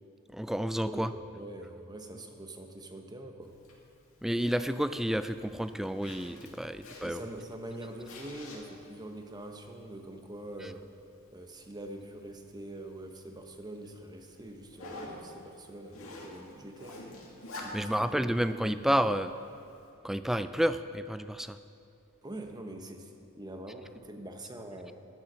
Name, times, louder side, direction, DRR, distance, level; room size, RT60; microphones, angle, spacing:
voice 1, 0.3-1.1 4.2-7.2 17.7-19.3 20.0-21.6, equal, ahead, 11 dB, 0.3 m, -30 dB
voice 2, 0.8-3.6 7.0-10.9 11.3-17.1 17.6-18.7 22.2-24.9, right 1 dB, 20° right, 4 dB, 0.9 m, -44 dB
Zipper (clothing), 3.4-19.9, left 1 dB, 65° left, 2.3 m, -50 dB
12.0 x 9.5 x 6.2 m, 2.6 s
head